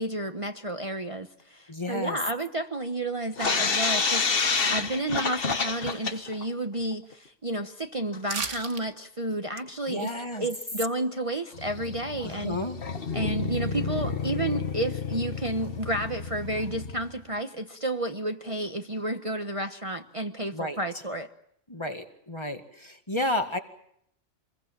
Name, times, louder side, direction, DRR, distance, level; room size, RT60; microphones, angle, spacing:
voice 1, 0.0-10.1 10.4-12.6 13.1-21.3, right 1 dB, 30° right, 5 dB, 1.1 m, -31 dB
voice 2, 1.7-2.2 9.9-10.5 12.2-12.8 20.5-20.8 21.7-23.6, left 1 dB, 25° left, 6 dB, 2.0 m, -32 dB
sound 1, 3.4-6.4 6.8-6.9 7.1-7.2 8.1-8.2 9.3-9.4 9.9-10.0 10.3-10.4 11.5-17.2, left 5 dB, 50° left, 1.5 m, -29 dB
sound 2, 8.3-8.9 9.2-9.3, right 5 dB, 85° right, 1.7 m, -33 dB
27.0 x 22.0 x 7.4 m, 0.73 s
omnidirectional pair, 1.2 m